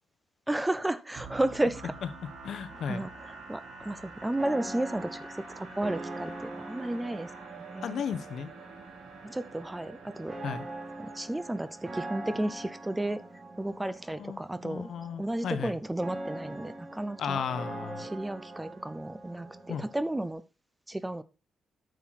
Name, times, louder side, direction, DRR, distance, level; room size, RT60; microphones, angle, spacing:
voice 1, 0.5-2.0 2.9-7.3 7.6-8.0 9.2-10.4 11.0-13.2 13.6-14.9 15.2-17.4 18.0-20.4 20.9-21.2, right 1 dB, 10° right, 0.5 m, -33 dB
sound 1, 1.2-12.9, right 3 dB, 85° right, 3.4 m, -48 dB
voice 2, 2.4-3.1 7.8-8.5 10.4-10.6 14.2-15.7 17.2-18.1 19.7-19.8, left 7 dB, 65° left, 1.0 m, -35 dB
sound 2, 2.7-20.3, right 2 dB, 40° right, 3.2 m, -43 dB
9.4 x 6.4 x 4.0 m
cardioid pair, 130°, 0 cm